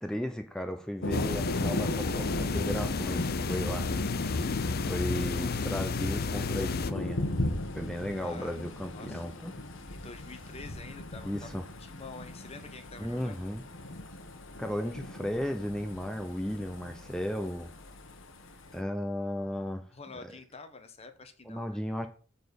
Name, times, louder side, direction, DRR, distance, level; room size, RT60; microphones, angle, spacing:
voice 1, 0.0-3.9 4.8-7.2 7.7-9.5 11.2-11.6 13.0-13.6 14.6-17.7 18.7-19.8 21.4-22.1, equal, 5° left, 5 dB, 0.8 m, -35 dB
Thunder, 1.0-18.8, left 1 dB, 65° left, 1.3 m, -38 dB
sound 1, 1.1-6.9, left 4 dB, 50° left, 0.6 m, -32 dB
voice 2, 5.4-5.7 8.2-8.5 8.9-9.3 9.9-13.4 19.9-21.8, left 3 dB, 30° left, 8 dB, 1.2 m, -48 dB
9.1 x 4.2 x 7.0 m, 0.39 s
head